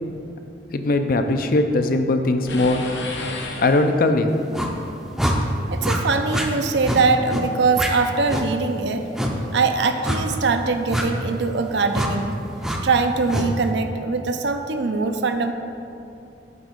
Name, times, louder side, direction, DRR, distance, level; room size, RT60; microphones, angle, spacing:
voice 1, 0.7-2.9 3.6-4.3, left 2 dB, 50° left, 7 dB, 0.5 m, -20 dB
sound 1, 2.5-4.3, left 2 dB, 70° left, 0.9 m, -33 dB
sound 2, 4.5-4.7 5.2-5.4 5.8-6.0 6.3-6.5 6.8-7.0 7.3-7.4 7.7-7.9 8.3-8.5 9.1-9.3 10.0-10.2 10.9-11.1 11.9-12.1 12.6-12.8 13.3-13.5, equal, ahead, 0.5 m, -24 dB
voice 2, 5.7-9.0 9.5-12.3 12.8-15.5, right 4 dB, 75° right, 7 dB, 0.5 m, -22 dB
9.2 x 3.6 x 6.6 m, 2.7 s
head